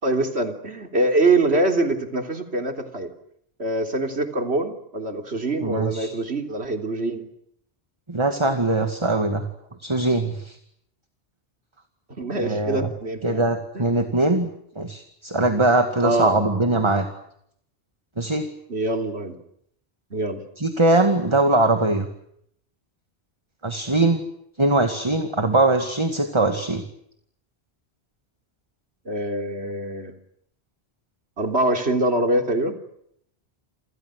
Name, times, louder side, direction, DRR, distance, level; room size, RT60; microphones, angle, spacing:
voice 1, 0.0-3.1 3.6-7.3 12.2-13.9 16.0-16.5 18.7-19.4 20.1-20.4 29.1-30.1 31.4-32.8, right 2 dB, 75° right, 5 dB, 3.7 m, -24 dB
voice 2, 5.6-6.1 8.1-9.5 9.8-10.6 12.4-12.9 13.2-14.5 14.8-17.1 18.2-18.5 20.6-22.1 23.6-24.2 24.6-26.8, right 2 dB, 25° right, 6 dB, 2.2 m, -21 dB
29.5 x 26.5 x 6.5 m, 0.72 s
omnidirectional pair, 1.1 m